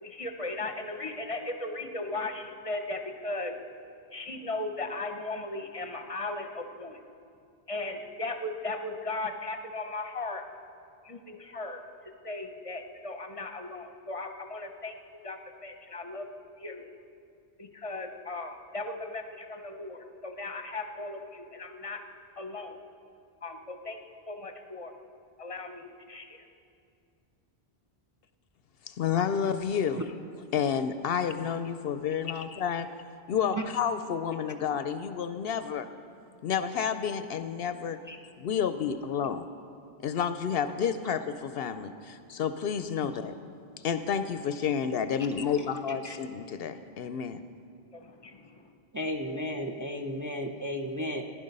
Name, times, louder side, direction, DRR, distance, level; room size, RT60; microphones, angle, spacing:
voice 1, 0.0-3.5 4.1-7.0 7.7-10.4 11.0-15.0 15.2-16.9 17.6-22.0 22.4-22.8 23.4-24.0 24.3-24.9 25.4-26.5 47.9-48.7, left 2 dB, 35° left, 5 dB, 0.9 m, -37 dB
voice 2, 28.9-30.0 30.5-32.9 33.3-35.9 36.4-38.0 38.4-39.4 40.0-43.4 43.8-47.4, left 7 dB, 70° left, 11 dB, 0.8 m, -30 dB
voice 3, 48.9-51.2, left 1 dB, 20° right, 2 dB, 0.6 m, -34 dB
16.0 x 10.5 x 5.3 m, 2.4 s
omnidirectional pair, 1.1 m